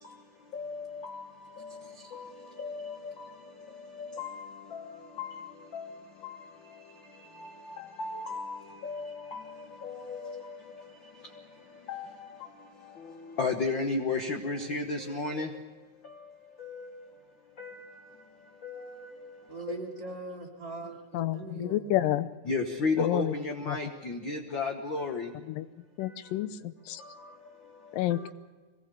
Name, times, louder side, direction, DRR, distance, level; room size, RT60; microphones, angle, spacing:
voice 1, 8.0-8.6 8.8-9.0 10.1-10.2 11.9-12.1 13.4-15.5 22.5-25.2, left 3 dB, 55° left, 4 dB, 1.3 m, -31 dB
voice 2, 19.5-21.9, right 3 dB, 35° right, 1 dB, 2.9 m, -40 dB
voice 3, 21.1-22.3 23.0-23.3 23.6-23.8 25.5-25.7 26.0-27.0 27.9-28.3, left 13 dB, 85° left, 13 dB, 2.5 m, -29 dB
24.0 x 19.0 x 6.9 m, 1.3 s
omnidirectional pair, 3.8 m